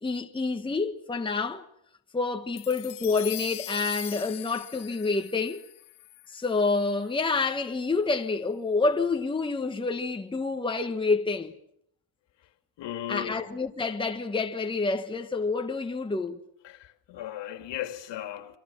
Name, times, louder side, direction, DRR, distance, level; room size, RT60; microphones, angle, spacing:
voice 1, 0.0-1.6 2.1-5.6 6.3-11.5 13.1-16.4, left 3 dB, 10° left, 1.2 m, -28 dB
sound 1, 2.6-7.1, left 17 dB, 85° left, 1.4 m, -41 dB
voice 2, 12.8-13.4 16.6-18.6, left 11 dB, 70° left, 2.6 m, -36 dB
28.0 x 24.5 x 7.2 m
cardioid pair, 145°, 45 cm